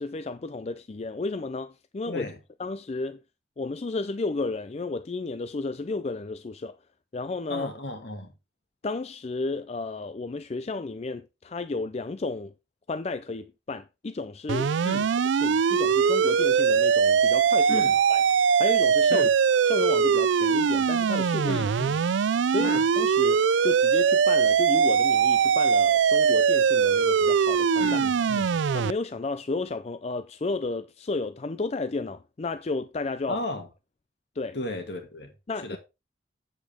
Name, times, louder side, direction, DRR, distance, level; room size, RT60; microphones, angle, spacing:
voice 1, 0.0-2.3 2.6-3.2 3.6-6.7 7.1-7.7 8.8-12.5 12.9-14.7 15.3-17.8 18.1-18.2 18.6-19.3 19.7-21.6 22.5-28.0 28.7-33.4 34.4-34.6 35.5-35.8, left 3 dB, 35° left, 0.4 m, -32 dB
voice 2, 2.1-2.4 7.5-8.3 14.8-15.1 17.7-18.0 19.1-19.3 21.5-22.0 22.6-22.8 27.8-28.5 33.3-33.7 34.5-35.3 35.6-35.8, left 1 dB, 60° left, 2.4 m, -34 dB
sound 1, 14.5-28.9, right 6 dB, 75° right, 0.4 m, -22 dB
8.2 x 7.9 x 3.6 m
head